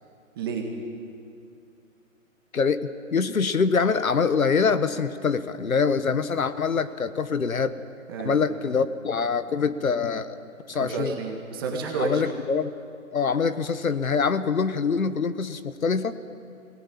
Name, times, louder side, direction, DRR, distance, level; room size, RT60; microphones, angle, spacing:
voice 1, 0.4-0.7 8.1-8.4 10.8-12.3, right 4 dB, 15° right, 0 dB, 1.8 m, -30 dB
voice 2, 2.5-7.7 8.2-10.3 10.7-11.2 12.0-12.7 13.1-16.2, left 5 dB, 80° left, 12 dB, 1.4 m, -24 dB
22.5 x 18.0 x 8.7 m, 2.5 s
hypercardioid pair, 170°, 41 cm